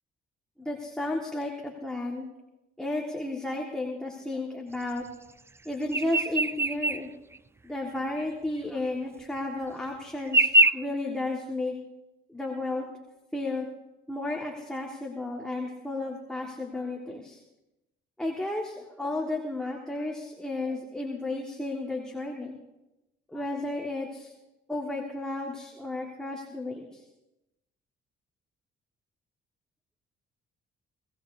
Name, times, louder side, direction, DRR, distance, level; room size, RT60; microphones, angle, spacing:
voice 1, 0.6-2.3 2.8-5.0 5.6-7.1 7.6-11.7 12.3-12.9 13.3-13.6 14.1-17.4 18.2-22.6 23.3-24.3 24.7-27.0, left 2 dB, 5° left, -1 dB, 1.8 m, -33 dB
sound 1, 5.9-7.0 7.4-7.5 8.2-8.3 9.4-9.5 10.3-10.7, right 1 dB, 15° right, 0.4 m, -22 dB
23.5 x 16.5 x 2.8 m, 0.98 s
cardioid pair, 90°, 20 cm